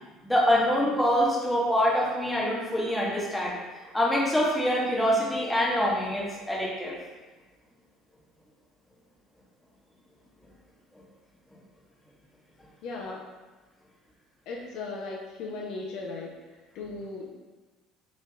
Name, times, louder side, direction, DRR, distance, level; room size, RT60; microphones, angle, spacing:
voice 1, 0.2-3.6 3.9-7.0, equal, 5° left, -4 dB, 0.8 m, -25 dB
voice 2, 12.8-13.2 14.5-16.4 16.7-17.3, left 3 dB, 60° left, -2 dB, 0.4 m, -37 dB
2.8 x 2.7 x 2.2 m, 1.3 s
figure-of-eight pair, 60°, 0 cm